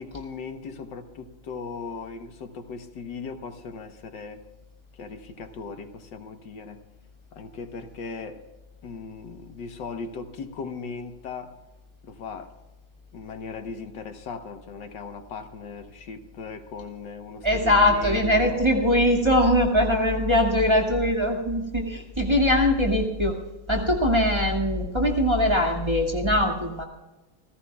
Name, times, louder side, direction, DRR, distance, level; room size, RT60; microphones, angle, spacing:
voice 1, 0.0-4.4 4.9-6.8 7.3-8.4 8.8-11.6 12.0-12.5 13.1-18.6, left 4 dB, 75° left, 7 dB, 1.8 m, -38 dB
voice 2, 17.4-23.3 23.7-26.8, left 1 dB, 15° right, 0 dB, 2.1 m, -21 dB
28.5 x 15.5 x 2.3 m, 1.1 s
omnidirectional pair, 2.0 m